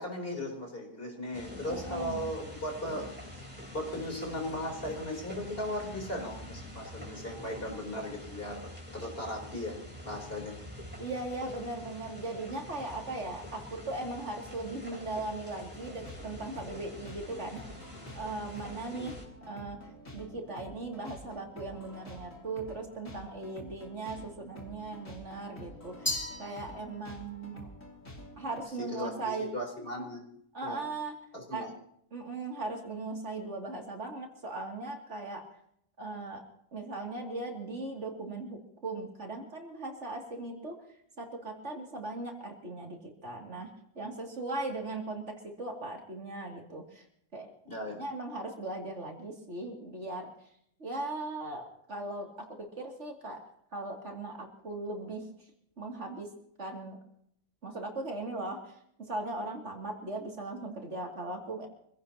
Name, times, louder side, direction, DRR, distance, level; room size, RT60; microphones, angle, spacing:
voice 1, 0.0-3.1 3.7-9.8 10.0-10.5 18.9-19.1 28.8-30.2 30.6-30.9 31.3-31.7 44.1-44.3 47.7-48.0, left 1 dB, 45° left, 1 dB, 4.0 m, -37 dB
sound 1, 1.3-19.3, left 1 dB, 5° right, 3.9 m, -46 dB
voice 2, 1.7-2.2 11.0-17.6 18.1-19.2 19.5-19.8 20.1-27.7 28.4-29.6 30.5-31.2 31.5-31.7 32.1-35.4 36.0-36.4 36.7-40.8 41.2-47.0 47.3-47.5 47.9-50.3 50.8-53.4 53.7-55.3 55.8-56.3 56.6-57.0 57.6-61.7, right 2 dB, 60° right, 1 dB, 2.9 m, -38 dB
sound 2, 15.7-28.6, equal, 70° left, 3.2 m, -49 dB
Glass, 26.1-27.3, left 2 dB, 10° left, 3.0 m, -36 dB
26.0 x 16.5 x 2.9 m, 0.71 s
omnidirectional pair, 1.4 m